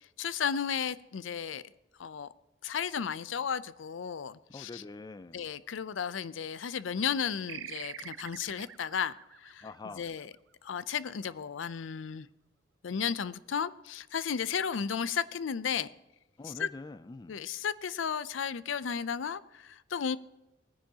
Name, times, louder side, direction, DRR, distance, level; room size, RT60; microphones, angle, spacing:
voice 1, 0.2-1.6 2.0-2.3 2.6-4.8 5.3-9.7 10.0-10.3 10.6-12.3 12.8-15.9 16.4-16.7 17.3-20.2, left 7 dB, 80° left, 16 dB, 0.5 m, -34 dB
voice 2, 4.5-5.5 9.6-10.1 16.4-17.4, left 3 dB, 20° left, 14 dB, 0.3 m, -45 dB
sound 1, 7.5-10.5, right 11 dB, 70° right, 0.4 m, -46 dB
19.0 x 10.0 x 2.8 m, 0.95 s
head